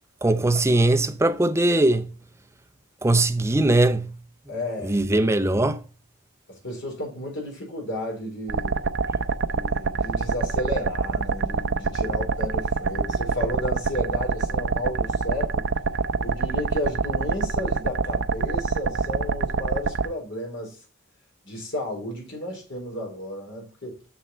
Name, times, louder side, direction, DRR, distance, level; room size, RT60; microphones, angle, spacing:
voice 1, 0.2-2.0 3.0-4.1 4.9-5.8, right 2 dB, 15° right, 0.6 m, -20 dB
voice 2, 4.5-5.0 6.5-8.8 9.5-15.6 16.2-20.8 21.4-24.0, left 1 dB, 55° left, 4.3 m, -33 dB
sound 1, 8.5-20.1, right 4 dB, 55° right, 0.5 m, -25 dB
7.1 x 6.4 x 4.3 m
head